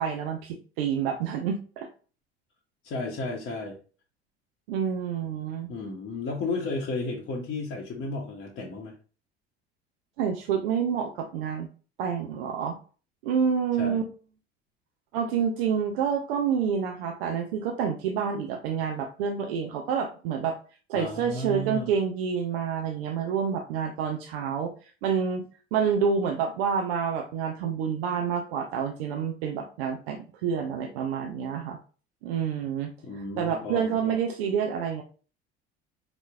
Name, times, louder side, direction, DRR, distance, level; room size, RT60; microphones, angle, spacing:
voice 1, 0.0-1.9 4.7-5.7 10.2-11.7 12.0-12.8 13.2-14.0 15.1-20.6 20.9-24.7 25.0-25.5 25.7-31.8 32.2-35.0, right 7 dB, 60° right, 3 dB, 0.6 m, -28 dB
voice 2, 2.8-3.8 5.7-8.9 13.8-14.0 20.9-21.9 33.0-34.2, left 2 dB, 35° left, -2 dB, 0.8 m, -33 dB
4.1 x 2.9 x 2.3 m, 0.38 s
figure-of-eight pair, 65°, 33 cm